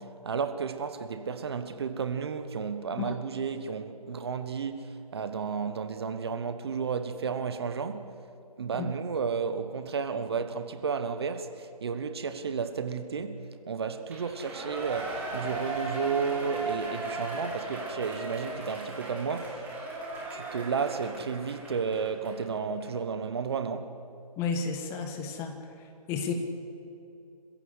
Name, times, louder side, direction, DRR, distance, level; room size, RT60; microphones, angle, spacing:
voice 1, 0.0-8.1 8.6-19.7 20.3-23.9, right 6 dB, 40° right, 1.3 m, -32 dB
Shout / Cheering, 14.1-22.4 22.8-22.9, right 2 dB, 10° right, 2.6 m, -37 dB
voice 2, 24.4-25.6 26.1-26.3, left 5 dB, 15° left, 1.4 m, -32 dB
26.5 x 15.5 x 8.1 m
figure-of-eight pair, 150°, 20 cm